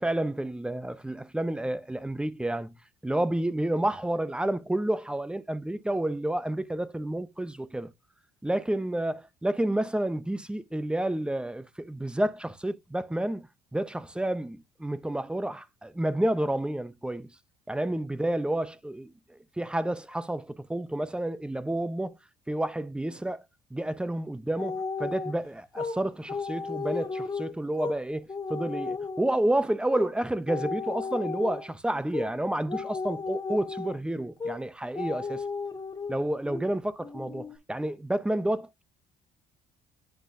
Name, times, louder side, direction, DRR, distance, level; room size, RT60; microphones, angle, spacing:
voice 1, 0.0-2.7 3.0-7.9 8.4-13.5 13.7-17.3 17.7-22.2 22.5-23.4 23.7-35.4 36.1-38.8, right 1 dB, 5° right, 0.6 m, -30 dB
sound 1, 24.6-25.4 25.7-26.0 26.3-28.0 28.3-29.4 29.9-30.1 30.5-31.7 32.1-32.3 32.7-34.0 34.4-34.6 34.9-36.2 36.5-36.7 37.0-37.6, left 4 dB, 25° left, 1.6 m, -34 dB
10.0 x 3.9 x 2.7 m
cardioid pair, 110°, 17 cm